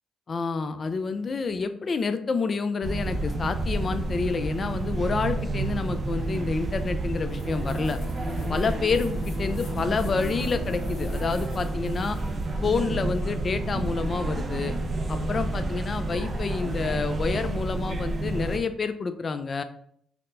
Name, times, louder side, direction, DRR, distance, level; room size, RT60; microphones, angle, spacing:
voice 1, 0.3-8.0 8.5-12.2 12.6-14.7 15.1-19.6, left 4 dB, 40° left, 10 dB, 0.3 m, -28 dB
sound 1, 2.8-18.6, right 2 dB, 40° right, 0.4 m, -30 dB
sound 2, 7.3-12.4, left 2 dB, 80° left, 0.6 m, -40 dB
4.2 x 2.0 x 2.5 m, 0.65 s
cardioid pair, 90°, 0 cm